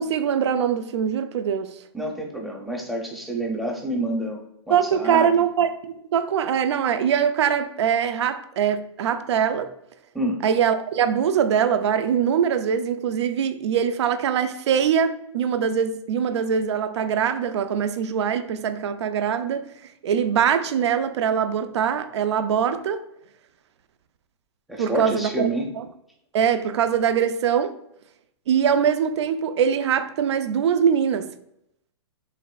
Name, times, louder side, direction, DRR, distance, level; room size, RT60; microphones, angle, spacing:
voice 1, 0.0-1.7 4.7-9.7 10.4-19.6 20.0-23.0 24.8-25.5 25.8-25.9 26.3-27.7 28.5-31.3, right 8 dB, 70° right, 0.5 m, -22 dB
voice 2, 1.9-4.4 4.7-5.3 10.1-10.4 24.7-25.7, right 1 dB, ahead, 0.7 m, -28 dB
5.2 x 3.6 x 2.4 m
hypercardioid pair, 150°, 15 cm